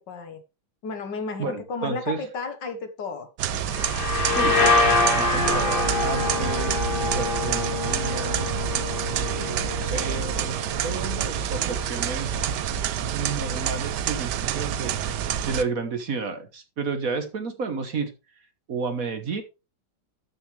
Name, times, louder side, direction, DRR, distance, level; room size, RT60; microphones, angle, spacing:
voice 1, 0.1-0.4 0.8-3.3 4.3-4.9, left 4 dB, 65° left, 8 dB, 2.1 m, -33 dB
voice 2, 1.4-2.2 4.3-6.7 7.1-8.5 9.1-12.5 13.1-18.1 18.7-19.4, right 4 dB, 50° right, 9 dB, 1.5 m, -32 dB
sound 1, 3.4-15.6, right 9 dB, 70° right, 1.2 m, -28 dB
sound 2, 3.7-11.3, left 3 dB, 30° left, 1.4 m, -25 dB
12.5 x 6.8 x 3.3 m, 0.28 s
omnidirectional pair, 2.1 m